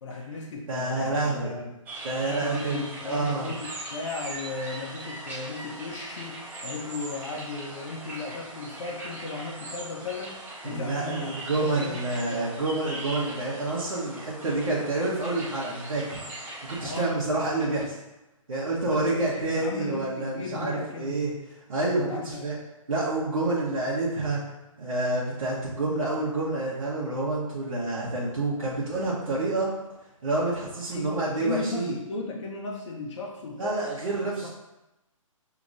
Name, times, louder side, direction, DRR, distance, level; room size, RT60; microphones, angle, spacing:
voice 1, 0.0-1.7 2.2-10.4 10.6-12.5 16.8-17.5 18.8-21.2 22.1-22.5 30.9-33.8 34.4-34.5, left 3 dB, 55° left, -1 dB, 0.7 m, -36 dB
voice 2, 0.7-1.5 2.0-3.5 10.6-16.2 16.6-18.0 18.5-21.3 21.7-22.6 22.9-24.4 24.8-29.7 30.2-31.9 33.6-34.5, right 2 dB, 70° right, -8 dB, 1.1 m, -28 dB
sound 1, 1.9-17.1, right 1 dB, 10° right, 0.4 m, -40 dB
5.8 x 2.9 x 2.6 m, 0.96 s
figure-of-eight pair, 135°, 18 cm